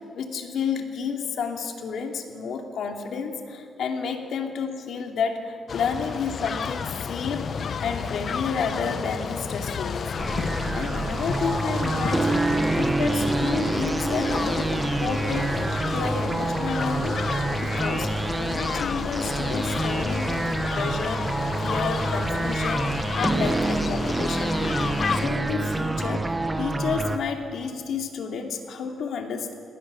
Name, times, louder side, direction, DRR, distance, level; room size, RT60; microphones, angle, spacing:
voice 1, 0.1-10.1 10.7-12.5 12.8-24.7 25.1-29.5, left 5 dB, 70° left, 3 dB, 2.8 m, -31 dB
sound 1, 5.7-25.3, left 6 dB, 50° left, 0.9 m, -31 dB
sound 2, 10.2-27.2, right 2 dB, 15° right, 1.1 m, -27 dB
28.5 x 18.5 x 7.0 m, 2.1 s
cardioid pair, 105°, 0 cm